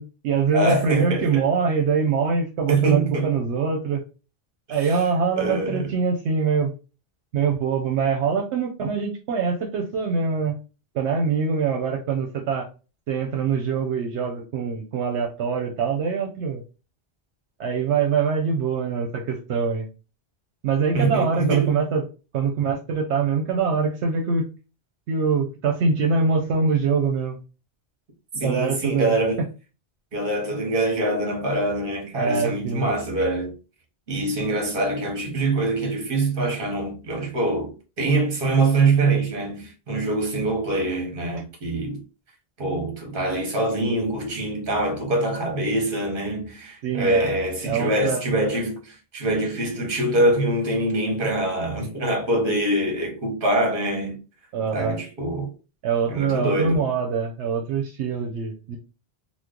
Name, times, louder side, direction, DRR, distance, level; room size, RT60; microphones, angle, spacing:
voice 1, 0.0-4.0 4.7-6.7 7.3-10.6 10.9-12.7 13.1-16.6 17.6-19.9 20.6-22.0 22.3-24.5 25.1-27.4 28.3-29.2 32.2-32.8 41.3-41.4 46.8-47.3 47.6-48.2 54.5-55.0 55.8-58.8, right 5 dB, 80° right, 0.9 m, -24 dB
voice 2, 0.5-1.4 2.7-3.3 4.7-5.1 5.4-5.9 20.9-21.7 28.4-29.4 30.1-33.5 34.1-42.0 42.6-54.2 54.7-55.5 56.1-56.8, right 2 dB, 55° right, 1.2 m, -24 dB
3.0 x 2.0 x 3.6 m
omnidirectional pair, 1.1 m